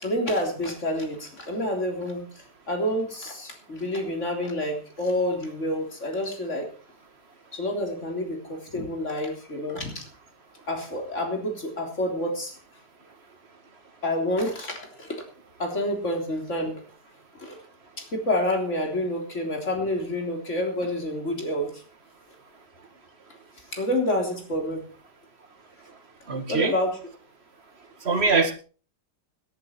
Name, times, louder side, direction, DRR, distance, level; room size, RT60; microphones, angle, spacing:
voice 1, 0.0-2.3 2.7-6.7 7.5-10.0 10.7-12.6 14.0-15.2 15.6-16.8 17.4-17.6 18.0-21.8 23.7-24.8 26.5-27.0, left 1 dB, 40° left, 3 dB, 3.9 m, -28 dB
voice 2, 26.3-26.7 28.1-28.5, right 4 dB, 35° right, 7 dB, 2.1 m, -22 dB
17.5 x 11.0 x 4.5 m, 0.37 s
omnidirectional pair, 1.9 m